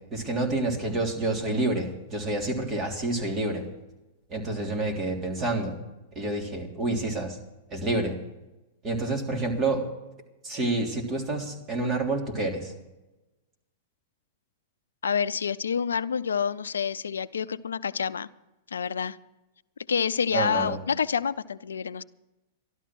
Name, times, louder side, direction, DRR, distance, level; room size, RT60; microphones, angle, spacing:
voice 1, 0.1-3.7 4.3-5.8 6.1-7.4 7.7-8.2 8.8-9.8 10.4-12.7 20.3-20.8, right 2 dB, 30° right, 2 dB, 3.3 m, -28 dB
voice 2, 15.0-18.3 18.7-19.2 19.9-22.0, left 6 dB, 80° left, 16 dB, 0.5 m, -28 dB
13.0 x 12.5 x 6.2 m, 1.0 s
hypercardioid pair, 105°, 0 cm